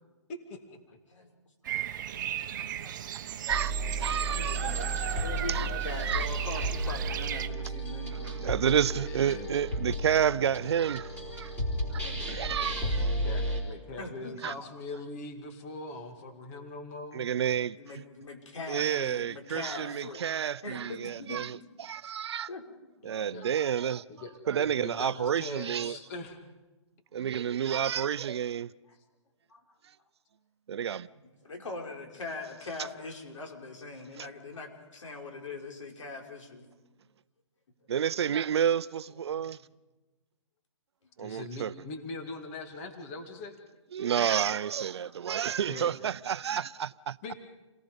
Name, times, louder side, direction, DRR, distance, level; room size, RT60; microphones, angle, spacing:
voice 1, 0.3-0.8 8.9-9.5 13.2-17.4 22.0-22.1 23.0-23.5 24.1-26.4 41.2-43.6 45.6-45.9 47.2-47.3, left 2 dB, 30° left, 2.2 m, -42 dB
Bird vocalization bird call bird song, 1.6-7.5, right 10 dB, 40° right, 1.0 m, -36 dB
voice 2, 2.8-3.5 4.0-8.5 14.0-14.3 17.8-20.2 20.6-21.4 22.5-22.6 29.5-29.6 31.4-36.7 44.0-44.1 45.0-45.1, left 3 dB, 80° left, 5.2 m, -42 dB
sound 1, 3.5-13.6, right 1 dB, 10° left, 4.5 m, -33 dB
voice 3, 3.5-4.6 5.5-5.7 6.0-6.3 8.4-11.5 11.9-13.1 14.4-14.5 17.1-18.0 18.7-22.5 23.0-24.0 24.5-26.0 27.1-28.7 30.7-31.1 34.2-34.3 37.9-39.6 41.2-41.7 43.9-47.2, right 8 dB, 60° right, 0.6 m, -30 dB
28.5 x 18.5 x 5.3 m
hypercardioid pair, 160°, 16 cm